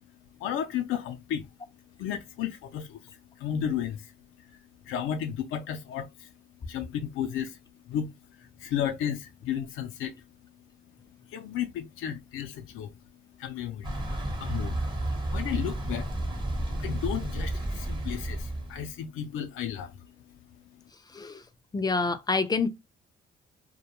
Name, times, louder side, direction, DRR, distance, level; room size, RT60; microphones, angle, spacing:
voice 1, 0.4-1.5 2.0-4.1 4.4-6.3 6.6-7.6 7.8-10.1 11.3-12.9 13.4-14.0 14.4-14.9 15.3-16.2 16.8-20.1 20.7-20.8, left 9 dB, 85° left, 0.4 m, -33 dB
Thunder / Bicycle, 13.8-18.9, right 1 dB, 25° right, 0.8 m, -32 dB
voice 2, 21.1-21.4 21.7-22.7, left 4 dB, 20° left, 0.4 m, -27 dB
2.2 x 2.1 x 2.9 m
cardioid pair, 90°, 20 cm